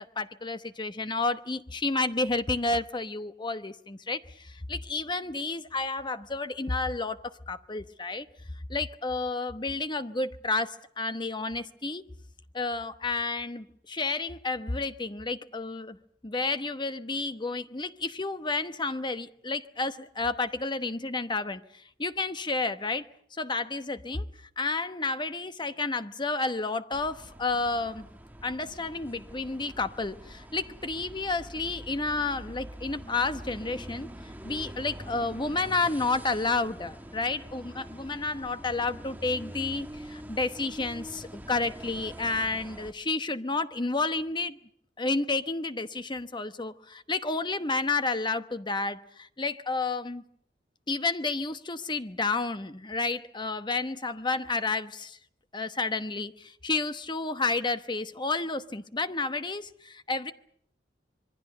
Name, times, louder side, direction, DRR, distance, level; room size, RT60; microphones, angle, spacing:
voice 1, 0.0-8.3 8.7-12.0 12.5-16.0 16.2-23.0 23.4-24.3 24.6-28.1 28.4-34.1 34.4-44.6 45.0-50.2 50.9-55.2 55.5-60.3, left 3 dB, 25° left, 1.0 m, -31 dB
sound 1, 26.9-42.9, equal, 10° right, 1.5 m, -45 dB
26.0 x 22.5 x 6.7 m
head